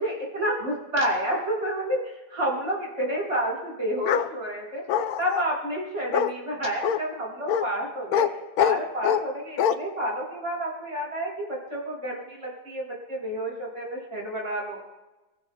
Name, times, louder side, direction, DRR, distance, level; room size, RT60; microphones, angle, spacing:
voice 1, 0.0-4.8 5.2-8.3 8.6-14.8, right 1 dB, 45° right, -2 dB, 5.4 m, -30 dB
Bark, 4.0-4.3 4.9-5.4 6.1-6.3 6.8-7.0 7.5-7.7 8.1-8.3 8.6-9.2 9.6-9.7, left 9 dB, 70° left, 1.1 m, -23 dB
29.5 x 16.0 x 2.2 m, 1.1 s
omnidirectional pair, 1.8 m